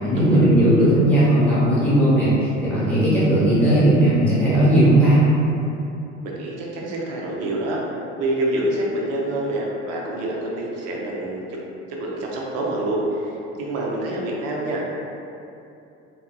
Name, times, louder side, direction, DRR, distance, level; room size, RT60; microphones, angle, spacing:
voice 1, 0.0-5.2, right 1 dB, 5° left, -11 dB, 1.3 m, -17 dB
voice 2, 6.2-7.8 8.2-11.4 12.0-14.8, right 1 dB, 40° right, -3 dB, 0.6 m, -26 dB
3.7 x 2.1 x 2.2 m, 2.7 s
figure-of-eight pair, 60°, 37 cm